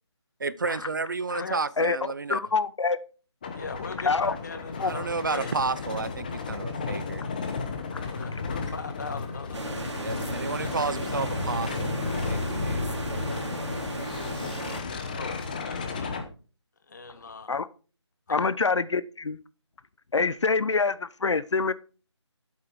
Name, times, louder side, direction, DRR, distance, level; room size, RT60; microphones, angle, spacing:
voice 1, 0.4-2.4 4.8-7.2 10.0-12.0 12.3-12.8, right 4 dB, 45° right, 0.6 m, -31 dB
voice 2, 2.3-3.0 4.0-4.3 4.8-4.9 7.9-8.0 17.5-17.7 18.3-19.4 20.1-21.7, left 4 dB, 75° left, 0.8 m, -25 dB
sound 1, 3.4-16.2, left 4 dB, 20° left, 0.9 m, -33 dB
voice 3, 3.5-5.6 8.0-9.9 10.9-11.4 14.8-16.3 16.9-17.5 18.3-18.5, left 4 dB, 40° left, 1.4 m, -40 dB
sound 2, 9.5-14.8, right 3 dB, 70° right, 2.7 m, -36 dB
11.5 x 8.4 x 4.6 m
figure-of-eight pair, 175°, 15 cm